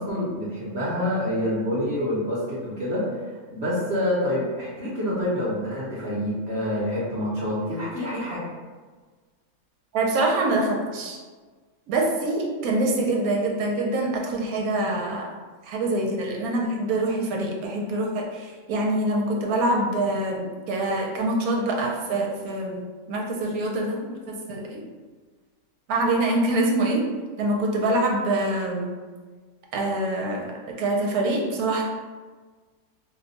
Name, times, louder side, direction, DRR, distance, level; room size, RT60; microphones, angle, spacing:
voice 1, 0.0-3.1 3.5-8.4, left 1 dB, 50° right, -7 dB, 0.9 m, -27 dB
voice 2, 9.9-11.2 11.9-15.3 15.6-24.8 25.9-27.0 27.4-28.9 29.7-30.5 30.8-31.8, right 2 dB, 75° right, 0 dB, 1.1 m, -25 dB
2.7 x 2.2 x 3.9 m, 1.4 s
omnidirectional pair, 1.6 m